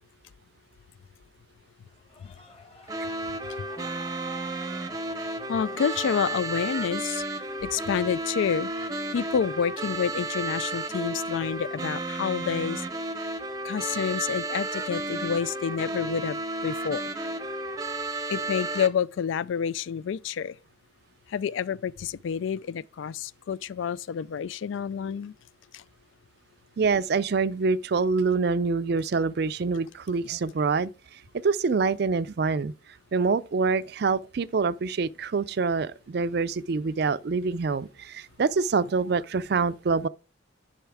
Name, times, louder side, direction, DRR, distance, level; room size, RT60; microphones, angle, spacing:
sound 1, 1.9-6.9, left 1 dB, 30° left, 1.5 m, -52 dB
sound 2, 2.9-18.9, right 2 dB, 20° right, 0.6 m, -33 dB
voice 1, 5.5-7.2 7.6-8.7 9.1-12.8 13.6-17.0 18.3-20.5 21.3-25.3 25.7-25.8, left 7 dB, 75° left, 0.3 m, -29 dB
voice 2, 26.8-30.9 31.4-32.7 33.1-40.1, right 4 dB, 55° right, 0.4 m, -25 dB
10.5 x 5.5 x 3.5 m
head